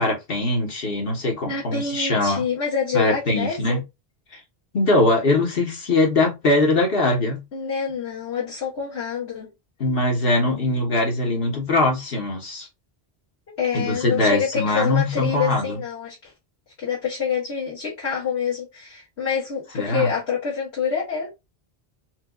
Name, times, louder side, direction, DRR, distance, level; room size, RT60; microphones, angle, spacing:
voice 1, 0.0-2.4 2.9-3.8 4.3-4.4 4.7-7.4 9.8-12.7 13.7-15.8 19.7-20.1, left 2 dB, 60° left, 1.4 m, -21 dB
voice 2, 1.4-3.8 7.5-9.5 13.6-16.2 16.8-21.3, left 6 dB, 90° left, 1.8 m, -26 dB
4.5 x 2.4 x 2.3 m
omnidirectional pair, 1.1 m